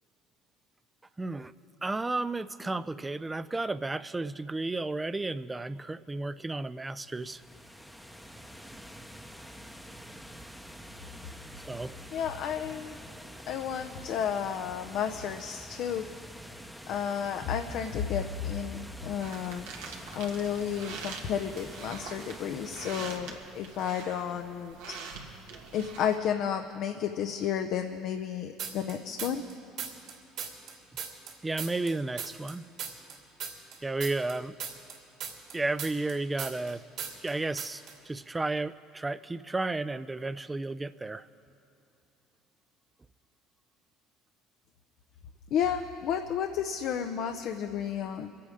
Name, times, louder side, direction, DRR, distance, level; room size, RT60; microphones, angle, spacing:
voice 1, 1.2-1.5 1.8-7.4 11.6-11.9 31.4-32.7 33.8-34.5 35.5-36.8 37.2-41.3, right 2 dB, 15° right, 15 dB, 0.4 m, -33 dB
sound 1, 6.9-23.2, equal, ahead, 0.8 m, -47 dB
voice 2, 12.1-13.0 13.5-16.1 16.9-19.7 20.1-25.0 25.7-29.4 45.5-48.3, left 8 dB, 65° left, 6 dB, 0.6 m, -32 dB
sound 2, 19.2-26.2, right 5 dB, 85° right, 1.7 m, -44 dB
sound 3, 28.6-29.5 29.8-32.5 32.8-36.7 37.0-37.3 37.6-37.9, right 7 dB, 65° right, 3.0 m, -37 dB
23.0 x 8.5 x 5.0 m, 2.7 s
supercardioid pair, 80°, 0 cm